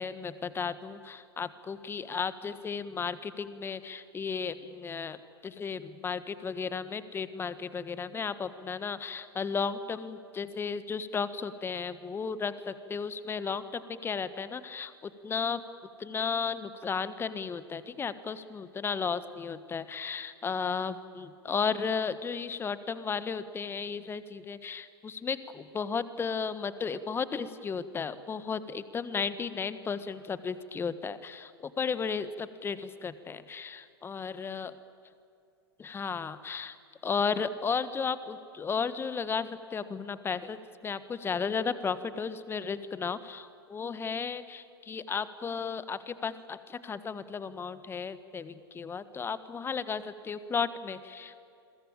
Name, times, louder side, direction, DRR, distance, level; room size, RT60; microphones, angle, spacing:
voice 1, 0.0-5.2 5.4-15.6 16.0-31.5 31.8-34.7 35.8-36.8 37.0-51.4, left 5 dB, 20° left, 14 dB, 1.4 m, -34 dB
29.0 x 22.5 x 8.8 m, 2.6 s
figure-of-eight pair, 95°, 13 cm